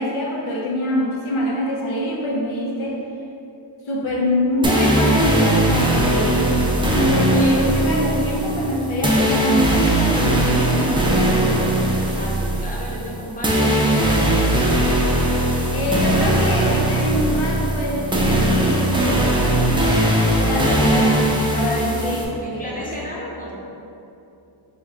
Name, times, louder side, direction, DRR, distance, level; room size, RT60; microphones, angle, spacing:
voice 1, 0.0-3.0 3.9-6.5 6.9-11.6 15.7-19.9 20.4-22.9, left 1 dB, 85° left, -2 dB, 0.7 m, -24 dB
sound 1, 4.6-22.2, right 1 dB, 10° right, 0.4 m, -19 dB
voice 2, 7.3-7.7 12.1-14.8 20.9-21.0 22.4-23.5, equal, 15° left, -5 dB, 0.7 m, -32 dB
4.6 x 2.2 x 3.6 m, 2.9 s
wide cardioid pair, 120°, 47 cm